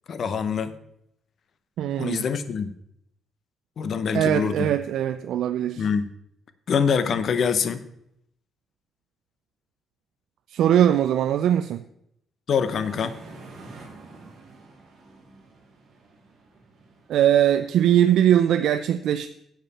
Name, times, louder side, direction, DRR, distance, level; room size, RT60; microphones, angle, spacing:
voice 1, 0.1-0.7 2.0-2.7 3.8-4.7 5.8-6.1 6.7-7.9 12.5-13.2, left 6 dB, 45° left, 12 dB, 0.7 m, -24 dB
voice 2, 1.8-2.2 4.1-5.9 10.5-11.8 17.1-19.3, right 10 dB, 70° right, 9 dB, 0.4 m, -21 dB
sound 1, 12.6-17.7, right 3 dB, 45° right, 2.6 m, -47 dB
10.5 x 7.5 x 4.1 m, 0.76 s
cardioid pair, 160°, 0 cm